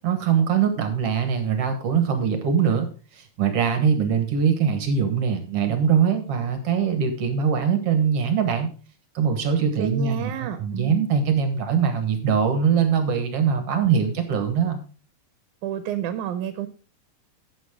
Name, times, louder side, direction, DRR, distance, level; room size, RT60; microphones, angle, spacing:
voice 1, 0.0-2.9 3.1-8.7 9.2-14.8, right 7 dB, 60° right, 8 dB, 2.1 m, -22 dB
voice 2, 9.8-11.0 15.6-16.7, right 10 dB, 90° right, 10 dB, 2.2 m, -30 dB
11.5 x 8.3 x 3.5 m, 0.36 s
omnidirectional pair, 3.4 m